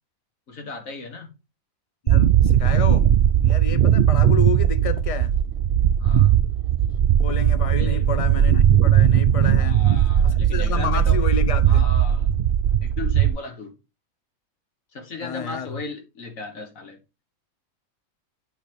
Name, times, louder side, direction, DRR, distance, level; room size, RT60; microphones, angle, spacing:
voice 1, 0.5-1.3 6.0-6.3 7.8-8.1 9.6-11.2 11.6-12.3 12.8-13.7 14.9-17.0, left 4 dB, 70° left, 2.1 m, -36 dB
voice 2, 2.0-5.3 7.2-9.8 10.5-11.8 15.2-15.8, left 6 dB, 40° left, 0.5 m, -30 dB
sound 1, 2.1-13.3, right 10 dB, 55° right, 0.6 m, -18 dB
8.8 x 5.7 x 3.5 m
omnidirectional pair, 1.5 m